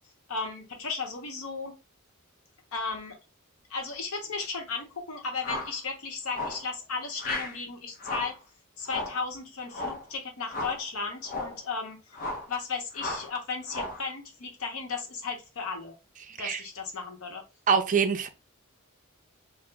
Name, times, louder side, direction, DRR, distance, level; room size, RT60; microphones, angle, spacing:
voice 1, 0.3-1.8 2.7-3.2 3.7-8.4 8.8-12.2 12.5-15.9 16.4-17.4, left 4 dB, 80° left, 0.8 m, -35 dB
sound 1, 5.4-5.8 6.3-6.7 7.2-7.6 8.0-8.4 8.9-9.2 9.7-10.0 10.5-10.8 11.2-11.6 12.1-12.5 12.9-13.3 13.7-14.1, left 2 dB, 45° left, 0.7 m, -35 dB
voice 2, 16.3-16.6 17.7-18.3, right 6 dB, 35° right, 0.4 m, -25 dB
2.9 x 2.0 x 3.4 m
head